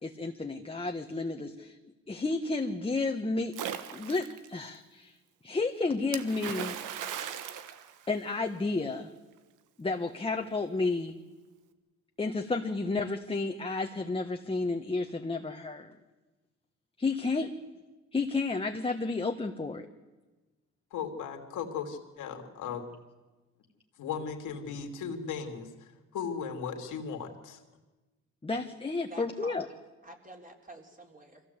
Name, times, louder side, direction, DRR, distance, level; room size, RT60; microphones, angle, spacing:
voice 1, 0.0-1.8 2.1-5.2 5.4-6.8 8.1-9.1 9.8-11.2 12.2-15.9 17.0-17.5 18.1-19.9 28.4-29.7, left 3 dB, 20° left, 4 dB, 1.3 m, -31 dB
Splash splatter, 3.5-4.5 6.1-8.6, right 9 dB, 90° right, 1.4 m, -38 dB
voice 2, 20.9-22.9 24.0-27.6, left 6 dB, 85° left, 5 dB, 2.9 m, -37 dB
voice 3, 29.1-29.7 30.0-31.4, right 1 dB, 25° right, 2 dB, 3.8 m, -49 dB
25.0 x 16.0 x 8.2 m, 1.2 s
cardioid pair, 90°, 30 cm